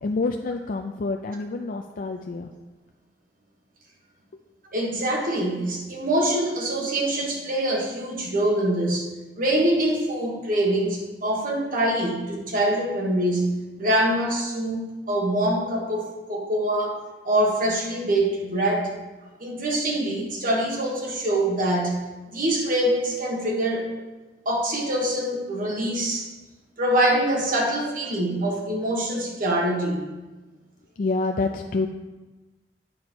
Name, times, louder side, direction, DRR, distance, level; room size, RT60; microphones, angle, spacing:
voice 1, 0.0-2.5 31.0-31.9, left 3 dB, 50° left, 4 dB, 0.4 m, -27 dB
voice 2, 4.7-17.0 17.2-18.9 19.4-22.0 22.3-23.9 24.4-26.3 26.8-30.1, right 1 dB, 50° right, 0 dB, 1.5 m, -24 dB
8.7 x 5.1 x 4.4 m, 1.2 s
head